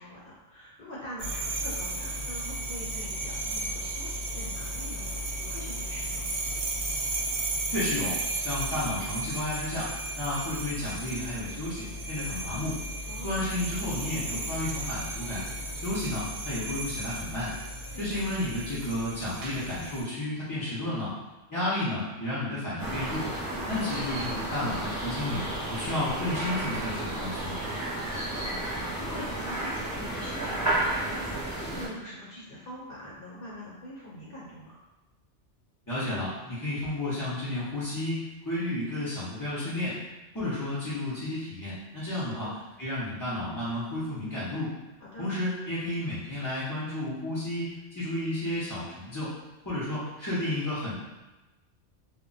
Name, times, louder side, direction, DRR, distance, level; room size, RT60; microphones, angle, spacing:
voice 1, 0.0-6.3 13.0-13.4 17.9-18.2 23.5-23.7 27.9-34.8 42.3-42.7 45.0-45.3, equal, 55° left, -7 dB, 0.9 m, -44 dB
sound 1, 1.2-20.0, right 1 dB, 60° right, 0.7 m, -34 dB
voice 2, 7.7-12.8 13.2-15.4 15.7-17.5 18.0-21.1 21.5-23.3 23.6-27.5 35.9-40.0 40.3-42.5 42.8-44.7 45.2-49.3 49.6-50.9, left 1 dB, 25° left, -12 dB, 0.4 m, -32 dB
sound 2, 22.8-31.9, right 1 dB, 20° right, 0.6 m, -32 dB
2.1 x 2.1 x 3.8 m, 1.1 s
omnidirectional pair, 1.2 m